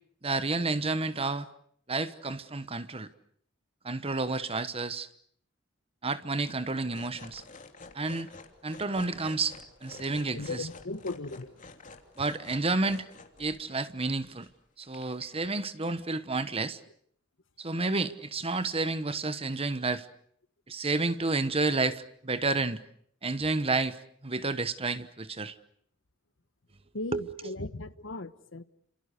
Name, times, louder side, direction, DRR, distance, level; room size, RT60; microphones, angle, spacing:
voice 1, 0.2-1.5 1.9-3.1 3.8-5.1 6.0-7.4 7.9-8.3 8.6-10.6 12.2-13.1 13.4-14.5 14.8-16.8 17.6-20.1 20.7-22.8 23.2-24.0 24.2-25.5 27.1-27.2, right 3 dB, 30° right, 1.1 m, -30 dB
sound 1, 6.9-13.6 14.0-14.5 14.8-15.4 15.9-16.0, left 3 dB, 40° left, 3.0 m, -50 dB
voice 2, 10.3-11.6 15.8-16.0 26.9-28.6, left 2 dB, 70° left, 1.2 m, -38 dB
29.0 x 27.0 x 6.7 m
head